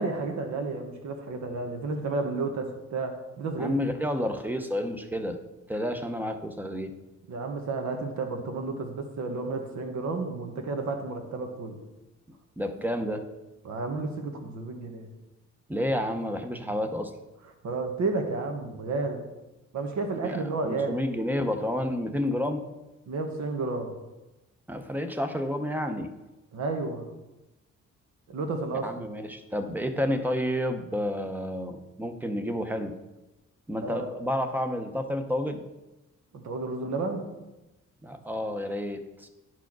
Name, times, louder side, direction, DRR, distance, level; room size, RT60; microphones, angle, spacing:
voice 1, 0.0-3.9 7.3-11.8 13.6-15.1 17.6-19.2 19.7-21.0 23.1-24.0 26.5-27.1 28.3-29.0 33.8-34.1 36.3-37.3, right 3 dB, 70° right, 4 dB, 1.5 m, -31 dB
voice 2, 3.6-5.4 5.7-6.9 12.6-13.2 15.7-17.1 20.2-22.6 24.7-26.1 28.8-32.9 33.7-35.6 38.0-39.3, equal, 5° right, 7 dB, 0.7 m, -30 dB
10.5 x 4.7 x 6.1 m, 1.0 s
wide cardioid pair, 155°, 29 cm